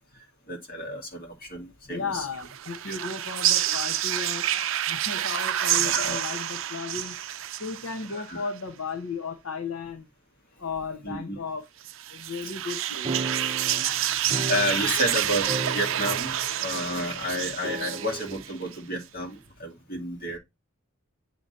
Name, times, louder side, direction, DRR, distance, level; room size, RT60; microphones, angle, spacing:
voice 1, 0.5-2.3 2.9-3.0 5.7-6.2 8.1-8.4 11.0-11.4 14.2-20.4, equal, 45° left, 2.0 m, -31 dB
voice 2, 1.8-7.2 7.6-10.1 10.6-11.6 12.1-13.1, left 5 dB, 75° left, 0.9 m, -35 dB
sound 1, 2.3-8.3 11.8-18.8, right 11 dB, 65° right, 0.5 m, -28 dB
sound 2, 13.0-15.2 15.4-16.5 16.7-16.8 17.6-18.4, right 3 dB, 25° right, 0.6 m, -34 dB
8.7 x 3.0 x 3.9 m
head